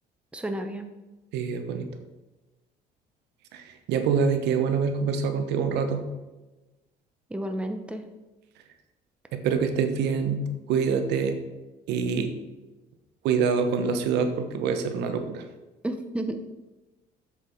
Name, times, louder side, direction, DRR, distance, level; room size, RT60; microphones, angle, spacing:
voice 1, 0.3-0.9 7.3-8.1 15.8-16.5, right 1 dB, 5° right, 6 dB, 0.8 m, -32 dB
voice 2, 1.3-1.9 3.5-6.0 9.3-11.4 11.9-12.3 13.2-15.4, right 6 dB, 85° right, 7 dB, 1.1 m, -25 dB
7.4 x 7.4 x 4.6 m, 1.1 s
cardioid pair, 110°, 17 cm